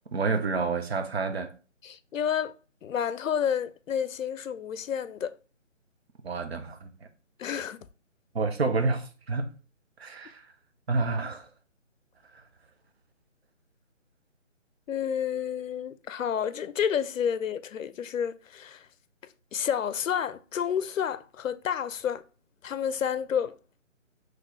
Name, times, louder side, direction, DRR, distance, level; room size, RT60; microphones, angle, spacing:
voice 1, 0.1-1.5 6.2-6.9 8.3-9.5 10.0-10.4 10.9-11.4, right 4 dB, 55° right, 0.7 m, -28 dB
voice 2, 1.8-2.5 2.8-5.3 7.4-7.8 14.9-18.9 19.5-22.2 22.6-23.5, left 8 dB, 85° left, 0.5 m, -30 dB
4.0 x 3.1 x 3.1 m
figure-of-eight pair, 160°, 38 cm